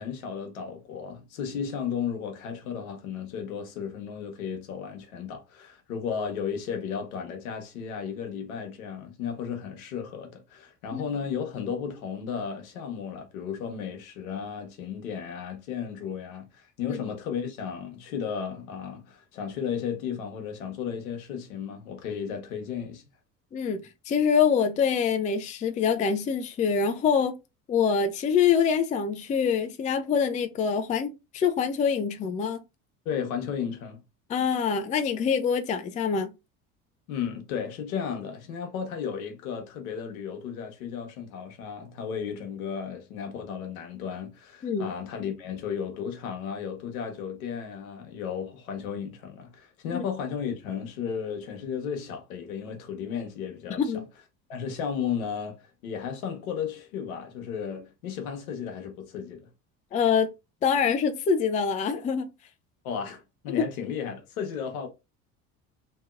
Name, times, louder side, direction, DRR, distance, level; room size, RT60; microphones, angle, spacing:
voice 1, 0.0-23.0 33.0-34.0 37.1-54.0 54.5-59.5 62.8-64.9, left 7 dB, 75° left, 1.0 m, -34 dB
voice 2, 23.5-27.4 27.7-32.6 34.3-36.3 44.6-44.9 49.9-50.0 53.8-54.0 59.9-60.3 60.6-62.3 63.6-63.7, left 6 dB, 20° left, 0.4 m, -25 dB
2.9 x 2.7 x 2.4 m
hypercardioid pair, 65°, 42 cm